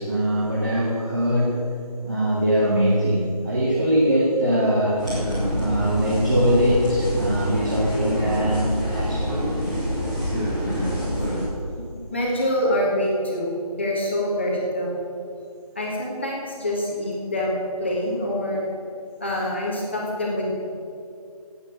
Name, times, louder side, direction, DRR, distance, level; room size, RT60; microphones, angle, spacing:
voice 1, 0.0-1.6 2.0-5.0 5.5-9.3, equal, 30° right, -4 dB, 1.8 m, -22 dB
sound 1, 5.0-11.4, equal, 10° right, 3.5 m, -26 dB
voice 2, 12.1-14.9 15.7-18.7 19.2-20.5, left 1 dB, 20° left, -4 dB, 1.7 m, -25 dB
13.0 x 8.6 x 7.8 m, 2.5 s
figure-of-eight pair, 180°, 20 cm